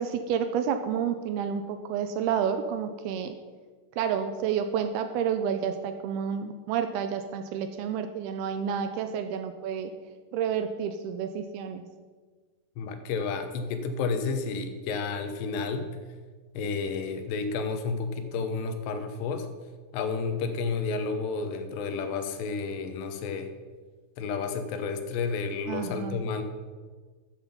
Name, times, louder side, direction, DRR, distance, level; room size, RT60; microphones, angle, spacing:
voice 1, 0.0-3.3 4.0-9.9 10.3-11.8 25.7-26.2, right 8 dB, 80° right, 8 dB, 2.4 m, -30 dB
voice 2, 12.8-15.9 16.5-19.5 19.9-23.5 24.2-26.4, left 4 dB, 80° left, 8 dB, 3.0 m, -31 dB
13.0 x 7.5 x 5.3 m, 1.4 s
omnidirectional pair, 4.9 m